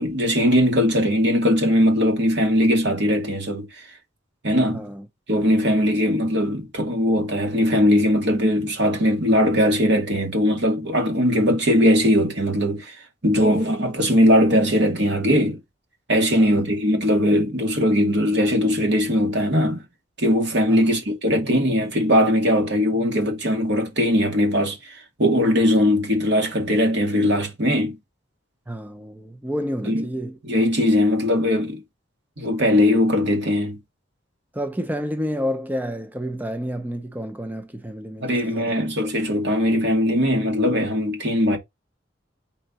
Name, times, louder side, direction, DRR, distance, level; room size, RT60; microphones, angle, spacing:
voice 1, 0.0-3.7 4.4-4.9 5.3-12.9 13.2-15.6 16.1-19.8 20.2-28.0 29.9-30.1 30.4-31.8 32.4-33.8 38.2-41.6, equal, 65° right, 2.3 m, -20 dB
voice 2, 4.7-5.0 16.3-16.6 20.7-20.8 28.7-30.4 34.5-39.1, equal, 10° right, 0.6 m, -30 dB
5.7 x 4.5 x 4.1 m
head